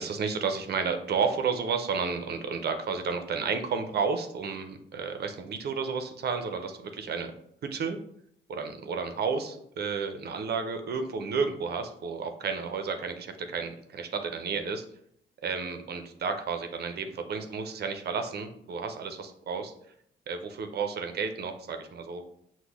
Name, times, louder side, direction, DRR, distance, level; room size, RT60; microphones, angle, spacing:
voice 1, 0.0-7.3 7.6-8.0 8.5-14.9 15.4-19.7 20.3-22.2, right 5 dB, 55° right, 6 dB, 0.6 m, -32 dB
6.1 x 2.2 x 3.4 m, 0.71 s
cardioid pair, 90°, 20 cm